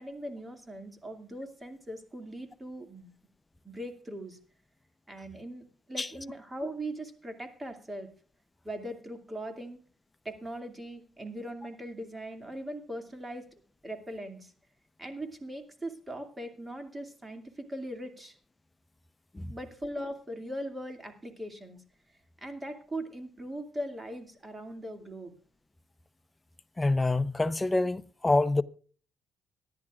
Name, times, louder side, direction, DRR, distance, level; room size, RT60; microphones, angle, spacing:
voice 1, 0.0-3.1 3.6-4.4 5.1-8.1 8.6-9.8 10.2-13.5 13.8-14.5 15.0-18.4 19.5-21.8 22.4-25.4, right 1 dB, 20° right, 2.4 m, -40 dB
voice 2, 26.8-28.6, left 2 dB, 15° left, 0.7 m, -26 dB
25.5 x 11.0 x 2.5 m
cardioid pair, 90°, 0 cm